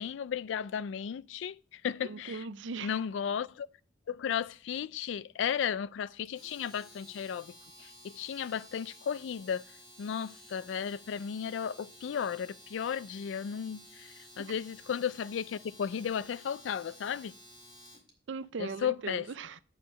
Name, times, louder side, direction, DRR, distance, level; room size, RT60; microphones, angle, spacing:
voice 1, 0.0-2.4 2.8-3.7 4.1-9.6 10.0-17.3 18.6-19.3, left 8 dB, 80° left, 0.3 m, -35 dB
voice 2, 2.0-2.9 14.4-14.5 18.3-19.6, right 4 dB, 80° right, 0.5 m, -39 dB
Domestic sounds home sounds, 6.2-18.1, equal, 25° left, 2.2 m, -54 dB
8.7 x 6.6 x 5.0 m
head